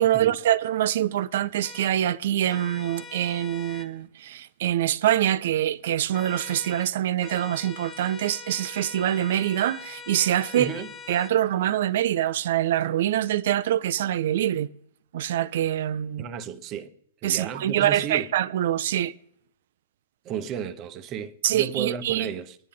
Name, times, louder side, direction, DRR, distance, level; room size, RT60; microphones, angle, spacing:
voice 1, 0.0-10.7 11.1-14.7 15.1-16.3 17.2-19.1 21.4-22.3, right 12 dB, 60° right, 0.5 m, -25 dB
sound 1, 1.6-1.9 2.5-3.9 6.1-6.9 7.2-11.4, left 5 dB, 20° left, 0.9 m, -43 dB
voice 2, 10.5-10.9 16.2-16.9 17.2-18.3 20.2-22.6, right 7 dB, 35° right, 0.9 m, -33 dB
24.5 x 10.0 x 3.8 m
figure-of-eight pair, 110°, 0 cm